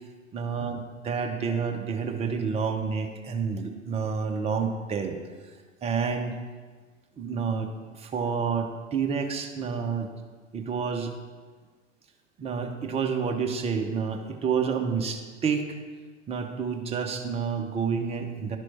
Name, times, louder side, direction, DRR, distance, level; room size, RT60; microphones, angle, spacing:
voice 1, 0.3-0.8 1.0-5.2 5.8-6.4 7.2-10.1 10.5-11.1 12.4-15.7 16.3-18.6, right 6 dB, 15° right, 4 dB, 0.8 m, -29 dB
11.0 x 6.3 x 4.3 m, 1.4 s
figure-of-eight pair, 95°, 38 cm